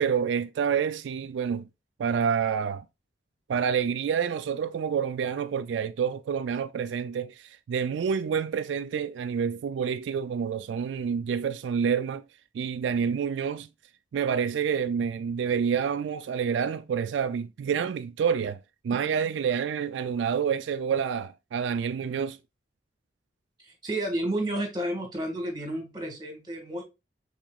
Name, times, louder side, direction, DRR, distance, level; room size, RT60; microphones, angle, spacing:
voice 1, 0.0-1.7 2.0-2.8 3.5-12.2 12.5-13.7 14.1-22.4, right 7 dB, 90° right, 0.3 m, -28 dB
voice 2, 23.6-26.8, right 1 dB, 25° right, 1.6 m, -31 dB
6.0 x 3.7 x 2.4 m
head